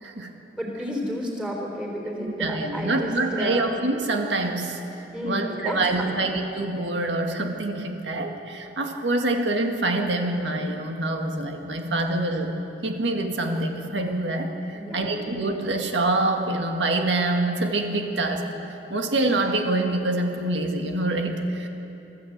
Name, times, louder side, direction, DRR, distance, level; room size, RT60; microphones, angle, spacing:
voice 1, 0.5-3.7 5.1-6.2 14.7-15.3, equal, 5° right, 0 dB, 3.9 m, -32 dB
voice 2, 2.2-4.8 5.2-18.5 18.9-21.7, right 2 dB, 70° right, 3 dB, 1.9 m, -26 dB
24.5 x 13.5 x 8.1 m, 2.9 s
head